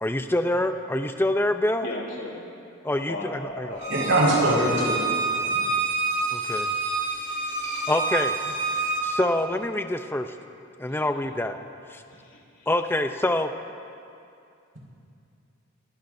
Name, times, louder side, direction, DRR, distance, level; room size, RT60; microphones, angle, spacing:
voice 1, 0.0-1.9 2.8-3.8 6.3-6.7 7.9-8.3 9.0-10.3 10.8-11.6 11.9-12.0 12.7-13.5, left 1 dB, 10° left, 7 dB, 0.5 m, -26 dB
voice 2, 1.8-2.4 3.1-4.1 6.3-6.9 7.2-7.4 10.9-11.0 12.1-12.7, left 1 dB, 70° left, -4 dB, 3.3 m, -38 dB
Bowed string instrument, 3.8-9.0, right 3 dB, 35° right, 2.4 m, -27 dB
voice 3, 3.9-5.7, right 1 dB, 80° right, -4 dB, 5.0 m, -23 dB
27.5 x 17.0 x 2.7 m, 2.5 s
head